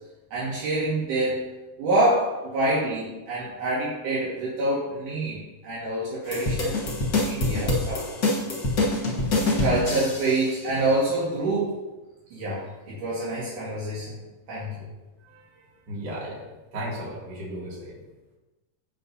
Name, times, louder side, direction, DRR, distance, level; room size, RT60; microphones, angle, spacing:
voice 1, 0.3-1.5 1.8-6.8 7.1-8.2 9.6-11.8 12.3-14.1 14.5-14.8, right 2 dB, 65° right, -7 dB, 3.2 m, -26 dB
sound 1, 6.3-10.4, left 2 dB, 75° left, 0.8 m, -25 dB
voice 2, 15.9-16.4 16.7-17.9, equal, 45° right, -6 dB, 3.5 m, -34 dB
16.0 x 5.5 x 2.8 m, 1.1 s
omnidirectional pair, 3.9 m